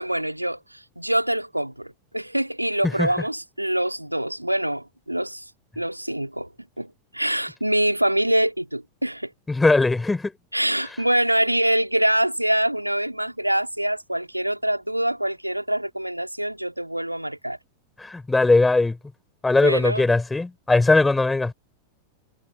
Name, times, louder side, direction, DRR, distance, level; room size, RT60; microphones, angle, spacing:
voice 1, 0.0-5.5 5.8-6.5 6.8-9.3 10.5-17.6 19.6-20.0, right 1 dB, 90° right, 2.6 m, -25 dB
voice 2, 9.5-10.3 18.0-19.0 19.4-21.5, left 3 dB, 10° left, 4.7 m, -19 dB
figure-of-eight pair, 90°, 0 cm